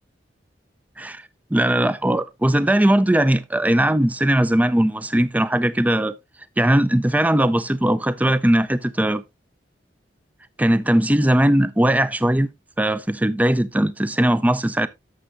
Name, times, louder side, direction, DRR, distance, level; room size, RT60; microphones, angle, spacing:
voice 1, 1.5-6.1 6.6-9.2 10.6-12.5 12.8-14.9, right 1 dB, 10° right, 0.4 m, -19 dB
11.0 x 7.1 x 2.4 m
head